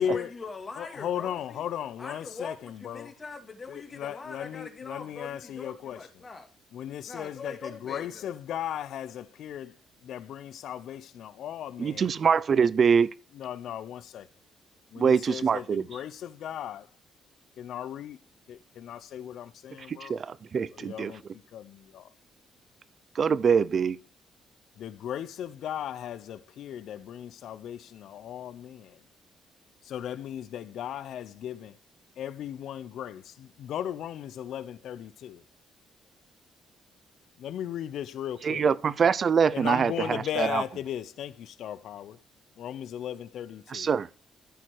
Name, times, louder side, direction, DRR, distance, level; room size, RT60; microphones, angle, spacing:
voice 1, 0.0-1.7 2.0-6.5 7.0-8.3, left 4 dB, 35° left, 2.3 m, -42 dB
voice 2, 0.8-3.1 3.7-6.0 6.7-9.7 10.0-12.1 13.3-14.3 14.9-15.6 15.9-16.1 16.4-16.8 17.6-18.2 18.5-20.2 20.7-21.2 21.5-22.1 24.8-29.0 29.8-31.8 32.2-35.4 37.4-38.7 39.5-42.2 42.6-43.9, left 10 dB, 75° left, 0.6 m, -36 dB
voice 3, 11.8-13.1 15.0-15.6 19.9-21.1 23.2-24.0 38.4-40.6 43.7-44.1, right 6 dB, 50° right, 0.6 m, -24 dB
14.0 x 4.6 x 4.6 m
cardioid pair, 90°, 0 cm